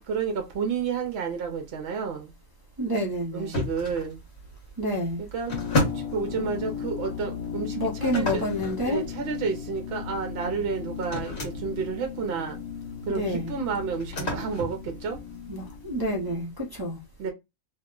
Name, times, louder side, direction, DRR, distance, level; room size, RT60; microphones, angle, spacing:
voice 1, 0.1-2.3 3.3-4.2 5.2-5.5 5.9-12.6 13.1-15.2 17.2-17.3, right 5 dB, 60° right, 0.8 m, -31 dB
voice 2, 2.8-3.6 4.8-5.2 7.8-9.0 13.1-13.5 15.5-17.0, equal, 25° right, 0.5 m, -29 dB
sound 1, 3.5-16.1, left 2 dB, 60° left, 1.5 m, -34 dB
sound 2, 5.5-16.4, left 7 dB, 80° left, 1.0 m, -37 dB
2.9 x 2.0 x 3.6 m
omnidirectional pair, 1.4 m